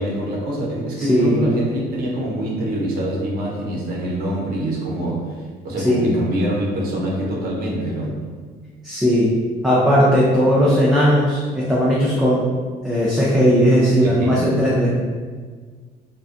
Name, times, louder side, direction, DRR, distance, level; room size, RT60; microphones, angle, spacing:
voice 1, 0.0-8.2 14.0-14.6, right 1 dB, 65° right, -4 dB, 0.7 m, -25 dB
voice 2, 1.0-1.3 5.8-6.1 8.8-9.3 9.6-12.4 12.8-14.9, equal, 5° right, -7 dB, 0.4 m, -17 dB
2.4 x 2.2 x 2.4 m, 1.6 s
cardioid pair, 110°, 17 cm